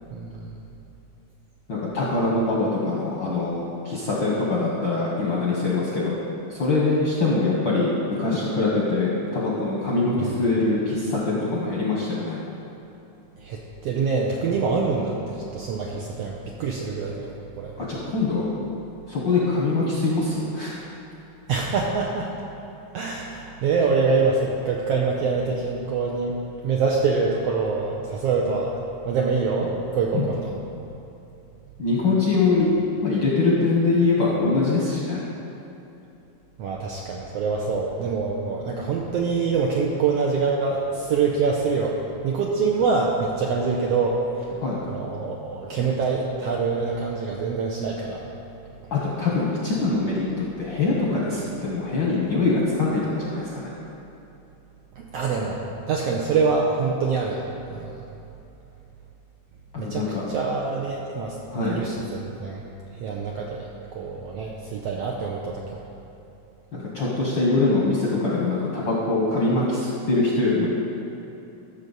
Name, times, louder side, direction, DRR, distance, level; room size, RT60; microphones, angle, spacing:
voice 1, 0.1-0.6 10.2-10.3 13.4-17.7 21.5-22.3 22.9-26.4 26.6-28.8 29.1-30.5 36.6-44.5 44.9-48.3 55.0-57.4 57.7-58.0 59.8-62.6 62.9-65.8, right 4 dB, 80° right, -2 dB, 1.5 m, -25 dB
voice 2, 1.7-6.2 6.5-12.4 17.8-18.6 19.1-20.7 30.1-30.2 31.8-32.7 33.0-35.2 44.6-45.0 48.9-53.7 59.7-60.2 61.5-61.8 66.7-70.7, left 3 dB, 60° left, -5 dB, 1.2 m, -23 dB
14.0 x 6.6 x 4.0 m, 2.9 s
omnidirectional pair, 3.6 m